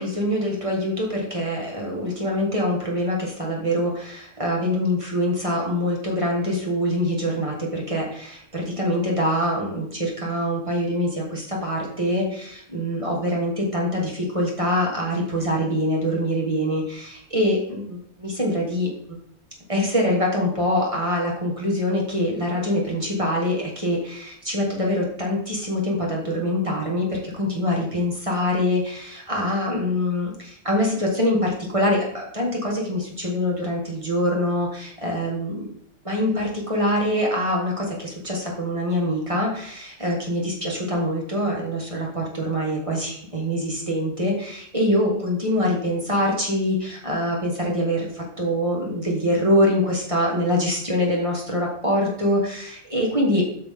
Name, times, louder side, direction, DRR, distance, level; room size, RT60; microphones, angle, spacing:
voice 1, 0.0-19.2 19.7-35.7 36.0-53.5, left 1 dB, 20° right, -2 dB, 2.0 m, -24 dB
8.1 x 5.9 x 3.9 m, 0.67 s
omnidirectional pair, 1.5 m